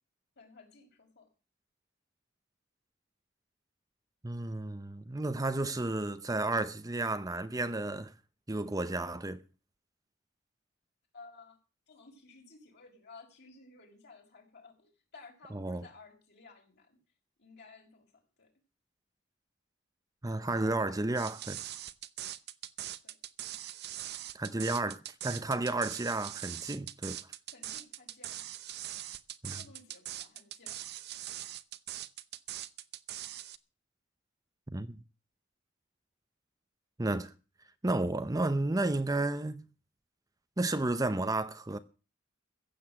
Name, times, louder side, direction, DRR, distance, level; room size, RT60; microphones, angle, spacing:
voice 1, 0.4-1.3 11.1-11.6 11.9-17.0 17.4-18.1 18.4-18.5 20.4-21.5 23.0-23.2 27.5-28.4 29.6-31.0, left 3 dB, 60° left, 5.8 m, -55 dB
voice 2, 4.2-8.1 8.5-9.4 15.5-15.8 20.2-21.6 24.3-27.2 29.4-29.6 34.7-34.9 37.0-37.3 37.8-39.6 40.6-41.8, right 2 dB, 20° right, 0.7 m, -32 dB
sound 1, 21.1-33.6, right 13 dB, 55° right, 0.8 m, -42 dB
15.0 x 7.8 x 7.7 m
head